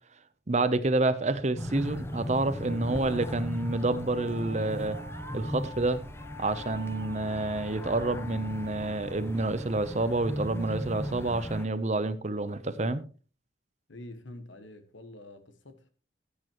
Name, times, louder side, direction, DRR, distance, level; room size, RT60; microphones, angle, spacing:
voice 1, 0.5-5.0 5.3-6.0 6.4-13.0, right 2 dB, 40° right, 0.7 m, -28 dB
sound 1, 1.6-11.7, equal, 15° left, 0.7 m, -38 dB
Wind instrument woodwind instrument, 2.5-10.0, equal, 45° left, 3.8 m, -46 dB
voice 2, 13.9-15.9, left 1 dB, 85° left, 1.5 m, -46 dB
15.0 x 8.6 x 3.0 m
head